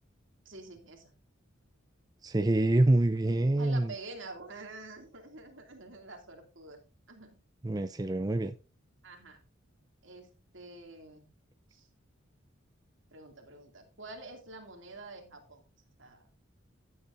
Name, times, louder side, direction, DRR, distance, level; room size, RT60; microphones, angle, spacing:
voice 1, 0.4-1.1 3.6-6.8 7.1-7.4 9.0-9.4 10.0-11.2 11.7-11.9 13.1-15.6 16.0-16.3, right 2 dB, 65° right, 2.6 m, -47 dB
voice 2, 2.2-3.9 7.6-8.5, right 2 dB, 20° right, 0.4 m, -26 dB
15.0 x 8.4 x 2.6 m
head